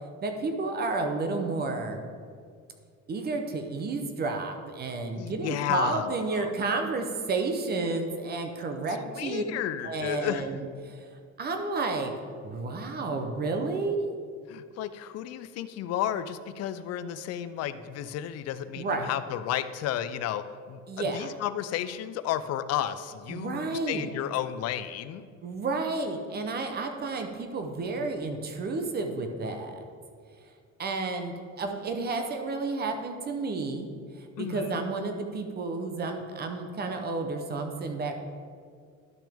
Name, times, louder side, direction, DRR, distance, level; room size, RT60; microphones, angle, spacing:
voice 1, 0.2-2.1 3.1-9.4 9.8-11.0 11.4-12.1 12.4-14.1 18.8-19.1 20.9-21.3 23.3-24.1 25.4-29.8 30.8-33.9 34.1-38.1, right 3 dB, 35° right, 5 dB, 0.7 m, -31 dB
voice 2, 5.2-6.5 8.9-10.6 14.5-25.2 34.4-34.8, left 11 dB, 55° left, 13 dB, 0.5 m, -33 dB
11.5 x 6.1 x 3.5 m, 2.1 s
cardioid pair, 165°, 30 cm